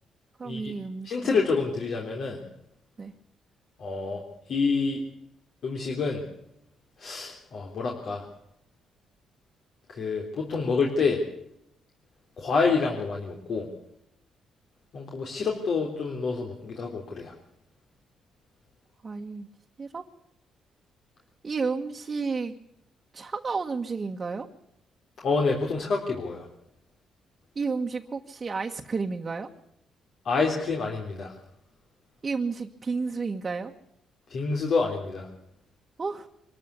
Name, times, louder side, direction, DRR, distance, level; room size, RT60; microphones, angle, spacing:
voice 1, 0.4-1.4 3.0-3.1 19.0-19.5 19.8-20.1 21.4-22.5 23.1-24.5 27.5-29.5 32.2-33.7 36.0-36.3, right 4 dB, 30° right, 2 dB, 1.5 m, -31 dB
voice 2, 1.0-2.4 3.8-4.2 4.5-5.0 5.6-6.2 7.0-8.3 9.9-11.2 12.4-13.7 14.9-17.3 25.2-26.4 30.3-31.3 34.3-35.3, left 4 dB, 60° left, 0 dB, 3.6 m, -27 dB
24.5 x 14.0 x 8.4 m, 0.81 s
cardioid pair, 90°, 0 cm